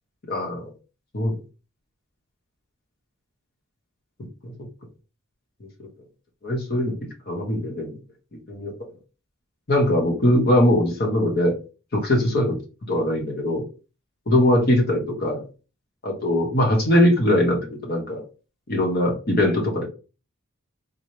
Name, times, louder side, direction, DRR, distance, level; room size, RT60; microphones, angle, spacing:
voice 1, 0.3-0.7 1.1-1.4 4.4-4.5 5.8-5.9 6.4-6.9 7.3-7.9 8.5-8.7 9.7-11.5 11.9-12.6 12.9-13.6 14.3-15.4 16.0-18.2 18.7-19.9, left 1 dB, 45° left, 0 dB, 0.9 m, -21 dB
3.8 x 2.8 x 3.1 m, 0.34 s
head